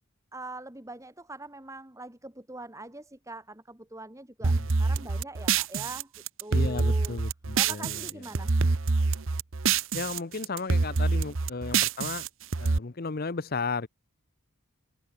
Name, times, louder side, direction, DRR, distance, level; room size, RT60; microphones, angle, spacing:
voice 1, 0.3-4.5 4.8-6.1 6.4-7.2 7.6-8.5, right 2 dB, 15° right, 1.6 m, -42 dB
sound 1, 4.4-8.1 8.3-10.2 10.4-12.8, right 4 dB, 65° right, 0.9 m, -26 dB
voice 2, 6.5-8.3 9.9-12.3 12.6-13.9, left 4 dB, 45° left, 0.7 m, -34 dB
head